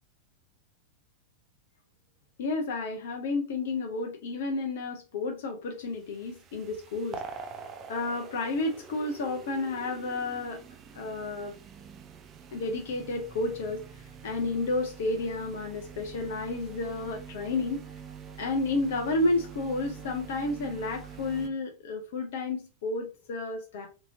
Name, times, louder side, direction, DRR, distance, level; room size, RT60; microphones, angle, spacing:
voice 1, 2.4-7.2 7.9-10.6 10.9-11.5 12.5-13.8 14.2-17.8 18.4-23.9, left 2 dB, 55° left, 0.5 m, -31 dB
sound 1, 5.9-21.5, right 6 dB, 30° right, 0.3 m, -45 dB
2.7 x 2.7 x 2.5 m
figure-of-eight pair, 90°, 0 cm